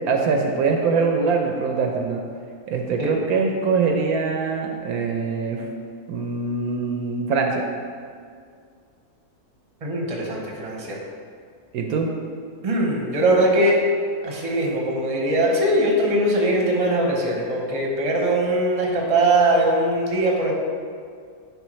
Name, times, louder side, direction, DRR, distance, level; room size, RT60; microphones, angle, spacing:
voice 1, 0.1-2.2 2.7-5.7 6.1-7.6 11.7-12.1, right 4 dB, 75° right, 2 dB, 1.0 m, -23 dB
voice 2, 9.8-11.0 12.6-13.8 14.2-20.5, right 1 dB, 30° right, -1 dB, 0.8 m, -21 dB
10.5 x 3.5 x 3.1 m, 2.1 s
omnidirectional pair, 1.6 m